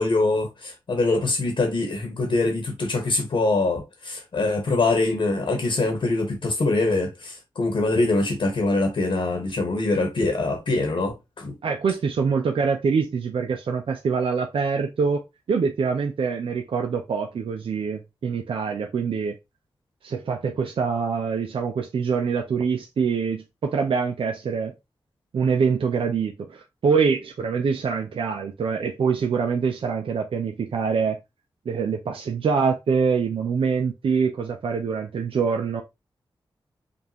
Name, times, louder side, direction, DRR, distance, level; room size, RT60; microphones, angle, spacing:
voice 1, 0.0-11.5, left 2 dB, 70° left, 1.2 m, -24 dB
voice 2, 11.6-19.3 20.0-24.7 25.3-31.2 31.7-35.8, right 5 dB, 75° right, 0.5 m, -25 dB
5.2 x 2.5 x 2.8 m
cardioid pair, 50°, 9 cm